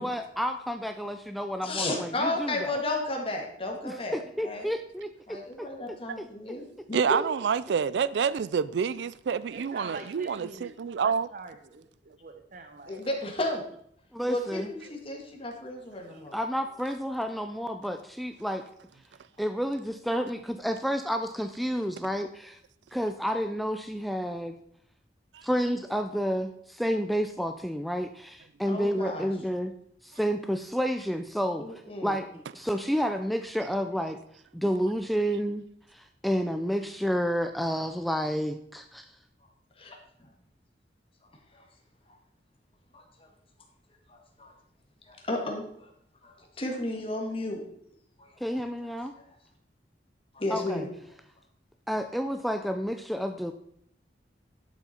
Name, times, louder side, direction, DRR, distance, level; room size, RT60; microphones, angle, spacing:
voice 1, 0.0-2.8 3.8-6.3 14.1-14.7 16.3-18.6 19.4-22.6 22.9-24.5 25.4-29.7 30.0-34.2 34.5-35.6 35.9-39.1 48.4-49.1 50.5-50.8 51.9-53.5, equal, ahead, 0.4 m, -30 dB
voice 2, 1.6-4.2 4.4-4.7 5.3-7.2 12.9-13.6 14.3-16.4 28.7-29.3 31.6-32.2 39.8-40.0 41.5-41.6 43.2-43.3 44.1-44.5 45.1-45.9 46.2-47.6 48.2-48.3 48.8-48.9 50.3-50.9, left 2 dB, 30° left, 1.9 m, -33 dB
voice 3, 6.9-11.3 25.3-25.5, right 6 dB, 80° right, 0.4 m, -28 dB
voice 4, 9.5-10.8 11.0-13.0 14.8-15.0 16.1-16.2 16.6-16.7, right 3 dB, 50° right, 0.8 m, -45 dB
11.5 x 7.1 x 4.3 m
head